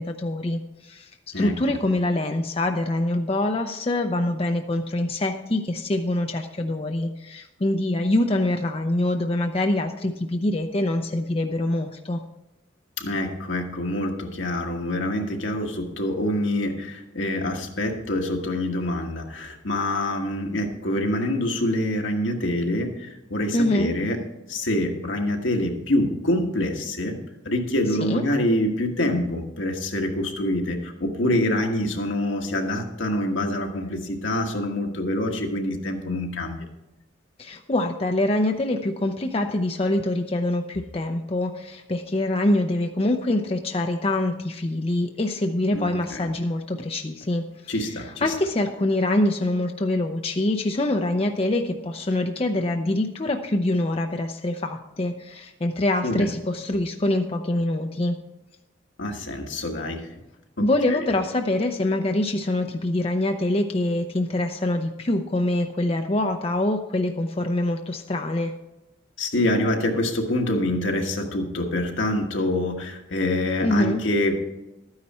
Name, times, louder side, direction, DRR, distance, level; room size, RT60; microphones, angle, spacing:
voice 1, 0.0-12.2 23.5-23.9 28.0-28.2 37.4-47.7 48.2-58.2 60.6-68.5 73.6-74.0, left 1 dB, 30° left, 5 dB, 0.5 m, -25 dB
voice 2, 13.0-24.2 24.5-27.2 27.4-36.7 45.7-46.3 47.7-48.3 56.0-56.3 59.0-60.1 60.6-61.0 69.2-74.4, left 1 dB, 75° left, 2 dB, 1.5 m, -26 dB
12.5 x 9.7 x 4.3 m, 0.96 s
head